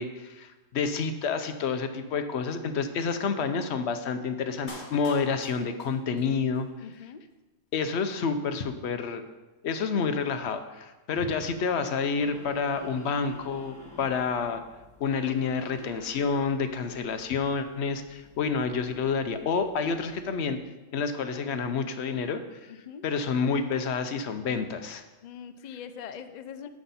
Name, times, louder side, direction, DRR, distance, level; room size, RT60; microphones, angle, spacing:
voice 1, 0.0-6.7 7.7-9.2 9.6-14.6 15.0-20.6 20.9-22.7 23.0-25.0, left 5 dB, 60° left, 8 dB, 0.9 m, -29 dB
Clapping, 4.7-6.7 6.9-7.0, left 2 dB, 40° left, 1.4 m, -47 dB
voice 2, 6.8-7.2 22.7-23.0 25.2-26.7, left 7 dB, 80° left, 9 dB, 0.3 m, -42 dB
sound 1, 12.2-20.4, left 3 dB, 5° left, 1.7 m, -52 dB
9.6 x 7.0 x 4.2 m, 1.1 s
omnidirectional pair, 1.4 m